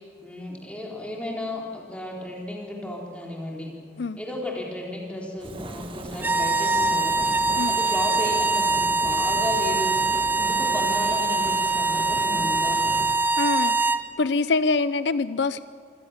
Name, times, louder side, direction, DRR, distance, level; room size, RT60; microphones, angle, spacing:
voice 1, 0.0-3.7 4.2-7.3 7.7-12.8, left 1 dB, 5° left, -2 dB, 3.8 m, -34 dB
Fire, 5.4-13.2, right 1 dB, 30° right, 1.4 m, -37 dB
sound 1, 6.2-14.1, right 3 dB, 10° right, 0.7 m, -23 dB
voice 2, 13.4-13.9 14.2-15.6, left 3 dB, 80° left, 15 dB, 0.6 m, -24 dB
27.0 x 16.0 x 7.2 m, 2.4 s
head